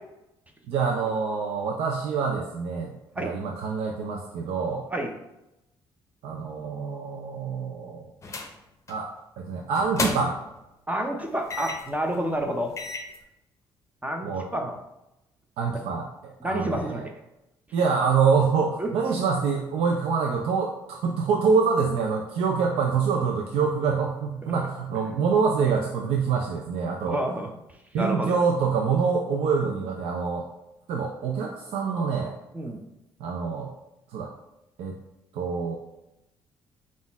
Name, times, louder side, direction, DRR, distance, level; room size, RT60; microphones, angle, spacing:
voice 1, 0.7-4.8 6.2-8.1 8.9-9.1 9.4-10.4 14.2-14.5 15.6-17.1 17.7-27.2 27.9-30.4 30.9-32.3 33.2-33.7 34.1-34.3 34.8-34.9 35.3-35.8, right 5 dB, 80° right, 1 dB, 0.5 m, -26 dB
sound 1, 8.2-8.6 8.9-9.1 9.7-10.5 11.5-11.9 12.4-12.5 12.8-13.2, left 3 dB, 30° left, 0.7 m, -32 dB
voice 2, 10.9-12.7 14.0-14.8 15.7-15.8 16.4-17.1 18.8-18.9 24.4-24.5 27.1-27.5 27.9-28.4 29.6-29.7 32.5-32.8, right 1 dB, 15° right, 3 dB, 0.7 m, -29 dB
4.0 x 2.4 x 4.0 m, 0.89 s
cardioid pair, 80°, 10 cm